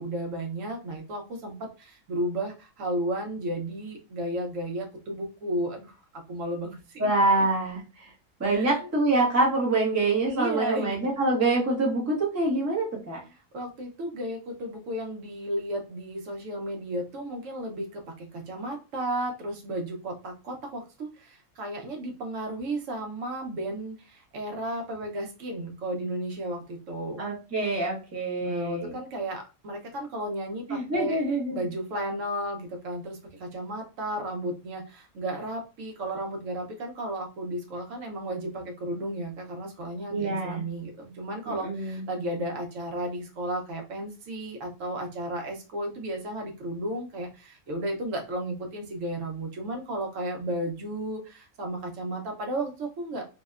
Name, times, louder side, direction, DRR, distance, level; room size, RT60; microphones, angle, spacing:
voice 1, 0.0-7.1 8.5-8.7 10.3-11.0 13.2-27.2 28.4-31.2 31.5-53.2, right 1 dB, 75° right, 2 dB, 1.0 m, -33 dB
voice 2, 7.0-7.8 8.4-13.2 27.2-28.9 30.7-31.6 40.1-40.6 41.5-42.0, right 2 dB, 15° right, -3 dB, 0.6 m, -25 dB
2.7 x 2.0 x 2.3 m, 0.31 s
omnidirectional pair, 1.3 m